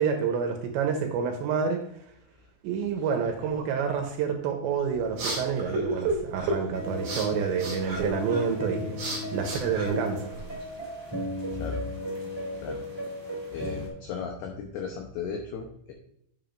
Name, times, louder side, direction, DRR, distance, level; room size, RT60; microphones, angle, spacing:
voice 1, 0.0-1.8 2.6-10.3, right 6 dB, 75° right, 4 dB, 2.8 m, -28 dB
sound 1, 4.7-10.6, right 2 dB, 45° right, 1.5 m, -33 dB
sound 2, 6.7-13.9, equal, 10° right, 1.1 m, -36 dB
voice 2, 11.5-11.8 12.6-12.8 13.5-15.9, left 6 dB, 85° left, 2 dB, 2.3 m, -35 dB
8.9 x 7.3 x 2.6 m, 0.73 s
omnidirectional pair, 5.8 m